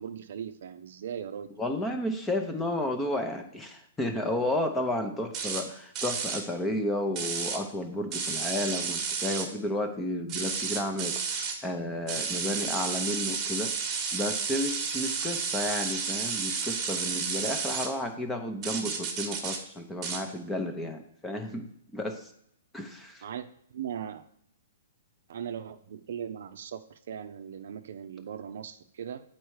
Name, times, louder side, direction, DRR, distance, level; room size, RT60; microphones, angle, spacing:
voice 1, 0.0-1.5 23.2-24.2 25.3-29.2, right 8 dB, 60° right, 10 dB, 0.5 m, -39 dB
voice 2, 1.6-22.3 22.7-23.2, left 1 dB, 5° left, 5 dB, 0.7 m, -32 dB
sound 1, 5.3-5.6 5.9-6.4 7.2-7.6 8.1-9.5 10.3-11.6 12.1-17.9 18.6-19.6 20.0-20.2, right 5 dB, 20° right, 1.2 m, -32 dB
8.0 x 4.4 x 4.7 m, 0.70 s
hypercardioid pair, 165°, 0 cm